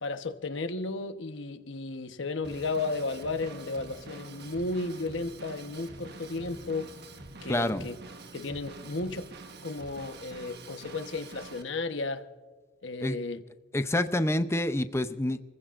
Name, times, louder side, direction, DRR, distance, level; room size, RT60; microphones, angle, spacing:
voice 1, 0.0-7.0 7.4-7.9 8.3-9.3 9.6-12.3 12.8-13.4, left 3 dB, 70° left, 8 dB, 1.1 m, -34 dB
Drum kit / Drum, 2.4-11.6, right 3 dB, 60° right, 1.4 m, -46 dB
voice 2, 7.5-7.9 13.0-13.2 13.7-15.4, left 1 dB, 15° left, 10 dB, 0.6 m, -27 dB
28.5 x 15.5 x 2.5 m, 1.4 s
head